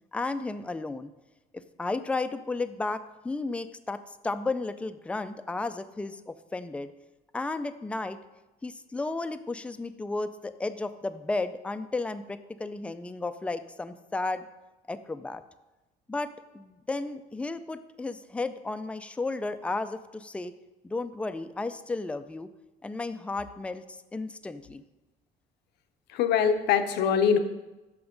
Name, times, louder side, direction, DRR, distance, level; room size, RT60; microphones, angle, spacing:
voice 1, 0.1-1.1 1.5-6.9 7.3-8.2 8.6-14.5 14.9-15.4 16.1-20.5 20.8-22.5 22.8-24.8, left 3 dB, 5° left, 11 dB, 0.3 m, -33 dB
voice 2, 26.1-27.4, left 7 dB, 80° left, 9 dB, 0.7 m, -23 dB
6.0 x 5.9 x 5.0 m, 1.1 s
cardioid pair, 110°, 17 cm